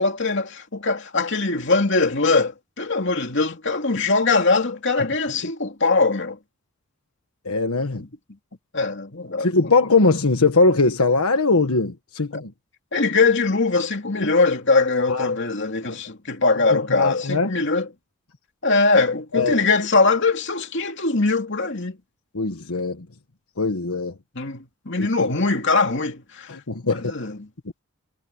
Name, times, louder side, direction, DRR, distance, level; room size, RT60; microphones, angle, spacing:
voice 1, 0.0-6.4 8.0-8.1 8.7-9.7 12.9-17.9 18.6-22.0 24.3-26.6 26.8-27.5, left 3 dB, 55° left, 2.8 m, -21 dB
voice 2, 7.4-8.0 9.4-12.5 15.1-15.3 16.7-17.5 19.3-19.7 22.3-23.0 23.6-24.1 25.0-25.3 26.5-27.1, left 3 dB, 85° left, 1.4 m, -21 dB
head